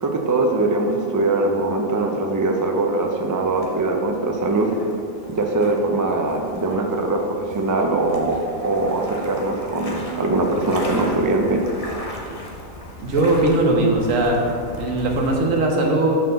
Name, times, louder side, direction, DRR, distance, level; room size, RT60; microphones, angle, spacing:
voice 1, 0.0-4.7 5.3-11.6, right 2 dB, 30° right, 2 dB, 0.3 m, -22 dB
sound 1, 3.1-15.4, left 1 dB, 30° left, 0.8 m, -37 dB
voice 2, 13.0-16.2, right 2 dB, 70° right, 0 dB, 1.5 m, -19 dB
6.0 x 4.5 x 6.5 m, 2.3 s
omnidirectional pair, 1.4 m